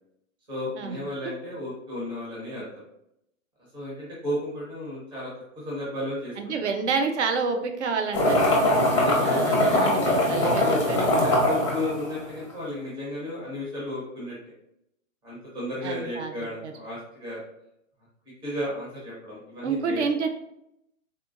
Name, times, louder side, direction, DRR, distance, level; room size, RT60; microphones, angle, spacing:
voice 1, 0.5-2.6 3.7-6.7 8.6-9.9 10.6-14.4 15.2-17.4 18.4-20.0, left 1 dB, 15° right, -7 dB, 0.7 m, -34 dB
voice 2, 6.4-8.4 9.2-11.2 15.8-16.3 16.6-16.7 19.6-20.3, right 4 dB, 60° right, 6 dB, 0.5 m, -28 dB
sound 1, 8.1-12.5, left 1 dB, 25° left, 0.5 m, -22 dB
3.7 x 2.1 x 2.4 m, 0.80 s
hypercardioid pair, 180°, 41 cm